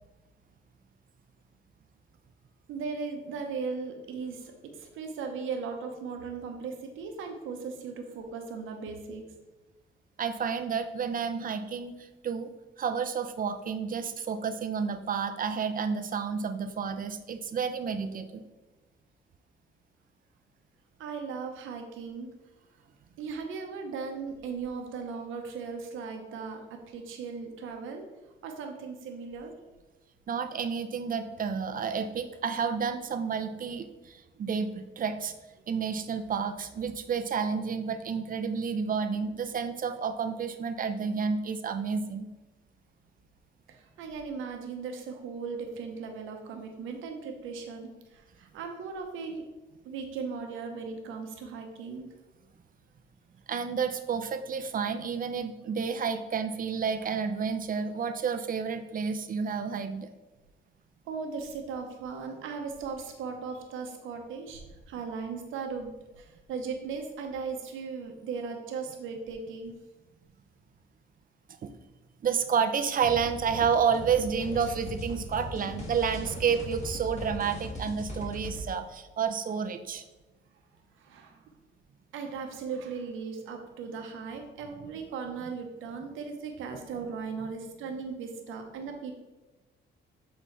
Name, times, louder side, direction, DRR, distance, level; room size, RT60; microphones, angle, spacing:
voice 1, 2.7-9.3 21.0-22.3 23.2-28.0 28.4-29.5 43.7-49.5 49.8-52.1 61.1-69.7 81.0-81.5 82.1-89.1, right 5 dB, 85° right, 3 dB, 1.0 m, -37 dB
voice 2, 10.2-12.5 12.8-18.4 30.3-35.3 35.7-42.3 53.5-60.1 71.6-71.7 72.2-80.0, right 6 dB, 45° right, 8 dB, 0.5 m, -30 dB
sound 1, 73.0-78.6, left 1 dB, 35° left, 1.7 m, -39 dB
7.4 x 4.0 x 3.2 m, 1.1 s
cardioid pair, 90°, 20 cm